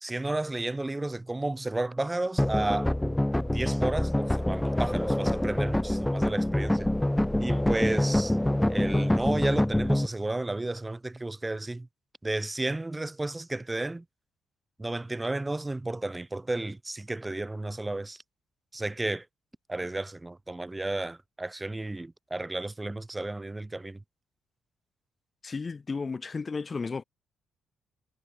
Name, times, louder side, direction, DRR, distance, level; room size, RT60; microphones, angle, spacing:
voice 1, 0.0-2.9 3.5-6.9 7.4-8.4 8.7-11.9 12.2-14.0 14.8-18.2 18.7-19.3 19.7-24.0, right 2 dB, 15° right, 1.9 m, -32 dB
sound 1, 2.4-10.1, left 1 dB, 5° left, 0.4 m, -26 dB
voice 2, 25.4-27.0, left 4 dB, 30° left, 1.9 m, -33 dB
cardioid pair, 90°, 0 cm